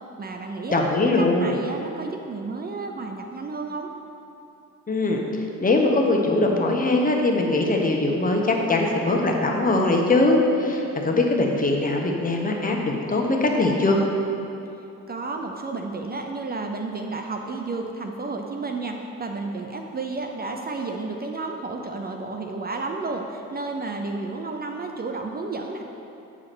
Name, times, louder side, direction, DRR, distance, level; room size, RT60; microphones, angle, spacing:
voice 1, 0.2-0.8 1.2-3.9 15.1-25.8, right 3 dB, 30° right, 3 dB, 0.6 m, -31 dB
voice 2, 0.7-1.5 4.9-14.0, left 2 dB, 30° left, 1 dB, 1.2 m, -21 dB
8.8 x 4.9 x 6.1 m, 2.8 s
cardioid pair, 90°, 30 cm